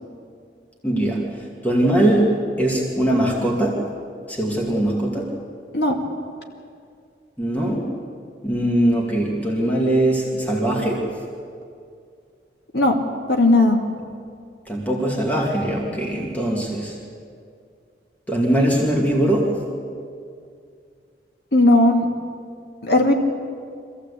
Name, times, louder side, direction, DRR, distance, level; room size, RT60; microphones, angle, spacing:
voice 1, 0.8-1.2 1.6-3.8 4.3-5.3 7.4-7.8 8.4-11.1 14.7-17.0 18.3-19.6, right 1 dB, 10° left, -2 dB, 2.5 m, -21 dB
voice 2, 13.3-13.8 21.5-22.1 22.8-23.1, left 2 dB, 70° left, 2 dB, 2.2 m, -16 dB
24.5 x 15.5 x 8.4 m, 2.3 s
head